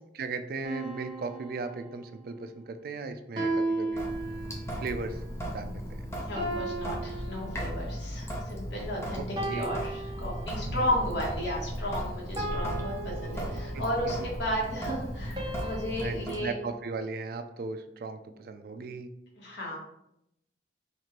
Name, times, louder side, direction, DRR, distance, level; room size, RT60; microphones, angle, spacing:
voice 1, 0.1-4.1 4.8-6.1 9.2-9.7 10.7-10.9 16.0-19.1, right 3 dB, 55° right, 8 dB, 0.3 m, -37 dB
sound 1, 0.6-2.3 3.4-4.9 6.4-8.0 9.4-10.9 12.4-14.1 15.4-16.4, right 2 dB, 25° right, 0.9 m, -36 dB
Sink (filling or washing) / Drip, 3.9-16.4, equal, 15° left, 0.5 m, -36 dB
voice 2, 6.2-16.5 19.4-19.8, equal, 80° left, -3 dB, 1.3 m, -34 dB
Singing / Musical instrument, 13.2-16.1, equal, 35° left, 1.2 m, -50 dB
4.3 x 2.5 x 3.0 m, 0.80 s
head